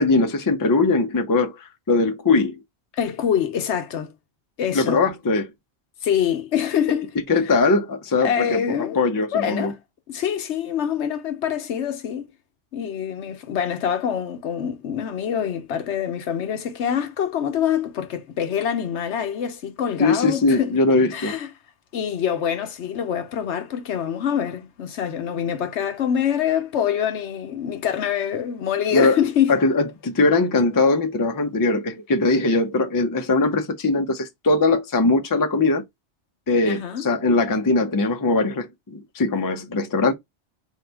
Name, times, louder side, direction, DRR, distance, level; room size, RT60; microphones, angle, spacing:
voice 1, 0.0-1.5 1.9-2.6 4.7-5.5 7.3-9.7 20.0-21.4 28.9-29.2 29.5-35.8 36.5-40.1, left 3 dB, 25° left, 0.5 m, -20 dB
voice 2, 3.0-4.1 4.6-5.0 6.0-7.2 8.2-9.0 9.3-9.8 10.1-12.3 12.7-20.7 21.1-21.5 21.9-29.5 36.6-37.1, left 9 dB, 75° left, 1.0 m, -25 dB
4.0 x 2.8 x 3.3 m
omnidirectional pair, 1.2 m